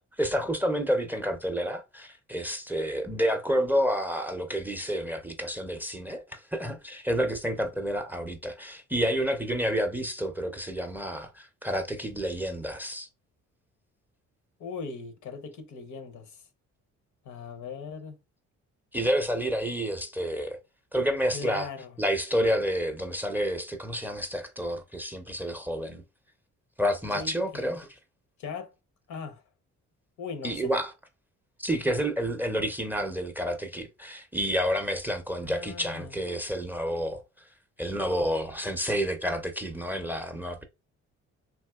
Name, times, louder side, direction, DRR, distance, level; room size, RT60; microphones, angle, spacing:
voice 1, 0.2-13.1 18.9-20.6 20.9-21.7 22.0-26.0 26.8-27.9 30.4-30.9 31.6-37.2 37.8-40.6, equal, 5° right, 0.5 m, -29 dB
voice 2, 14.6-16.4 17.2-18.2 21.3-21.9 27.1-27.7 28.4-28.7 29.1-29.4 30.2-30.7 35.4-36.2, left 5 dB, 75° left, 0.8 m, -39 dB
3.5 x 2.6 x 2.3 m
cardioid pair, 90°, 30 cm